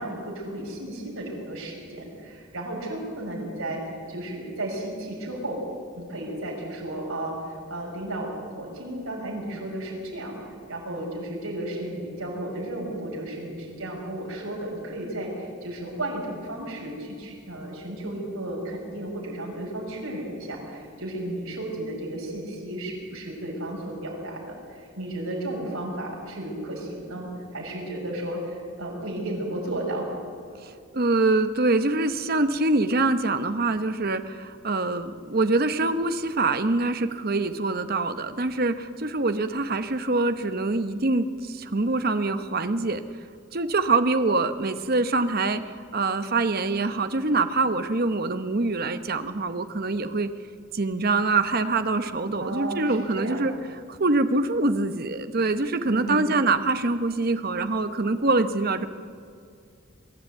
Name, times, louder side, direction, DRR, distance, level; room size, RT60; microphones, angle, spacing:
voice 1, 0.0-3.8 4.1-5.6 6.0-30.1 52.4-53.5 55.8-56.3, right 1 dB, 80° right, -2 dB, 6.5 m, -33 dB
voice 2, 30.6-43.0 43.5-50.3 50.7-53.5 53.9-58.9, right 3 dB, 45° right, 9 dB, 0.9 m, -24 dB
22.5 x 12.5 x 9.2 m, 2.3 s
head